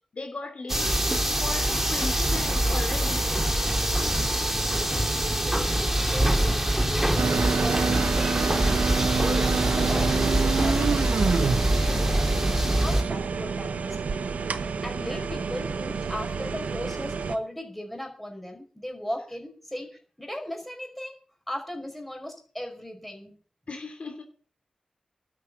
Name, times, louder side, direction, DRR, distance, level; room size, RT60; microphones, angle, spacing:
voice 1, 0.1-3.3 15.0-15.3 23.7-24.2, left 3 dB, 55° left, 4 dB, 3.2 m, -37 dB
sound 1, 0.7-13.0, right 1 dB, 15° right, 2.9 m, -24 dB
voice 2, 4.4-12.1 12.6-14.3 14.8-21.2 21.5-23.4, equal, 5° left, 2 dB, 5.3 m, -38 dB
sound 2, 7.2-17.4, right 5 dB, 90° right, 1.0 m, -28 dB
12.5 x 7.7 x 9.3 m, 0.42 s
wide cardioid pair, 95°, 3 cm